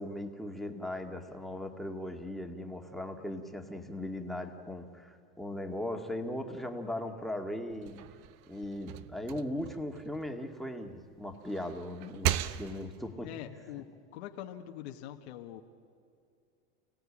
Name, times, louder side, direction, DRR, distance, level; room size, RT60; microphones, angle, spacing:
voice 1, 0.0-8.0 8.5-13.3, left 1 dB, ahead, 3 dB, 2.0 m, -38 dB
sound 1, 7.7-10.9 11.3-13.1, right 12 dB, 60° right, 1.0 m, -37 dB
voice 2, 13.2-15.6, left 11 dB, 90° left, 2 dB, 1.6 m, -44 dB
29.5 x 17.5 x 8.7 m, 2.4 s
supercardioid pair, 125°, 32 cm